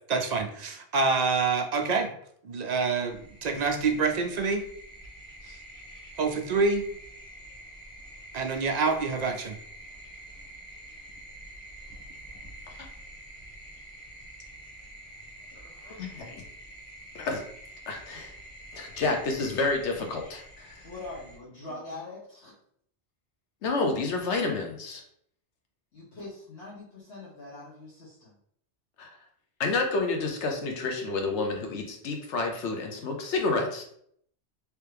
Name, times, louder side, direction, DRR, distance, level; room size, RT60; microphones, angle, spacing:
voice 1, 0.1-2.1 2.4-4.6 5.4-5.6 6.2-6.9 8.3-9.6, right 4 dB, 60° right, 3 dB, 0.4 m, -27 dB
sound 1, 3.1-21.4, right 1 dB, 5° left, 1.4 m, -47 dB
voice 2, 15.8-16.4 17.1-17.4 17.9-18.3 18.7-20.8 23.6-25.0 29.0-29.1 29.6-33.8, left 3 dB, 90° left, 3 dB, 1.1 m, -29 dB
voice 3, 20.8-22.5 25.9-28.4, left 2 dB, 75° left, -10 dB, 1.5 m, -43 dB
3.3 x 3.0 x 3.3 m, 0.66 s
omnidirectional pair, 1.1 m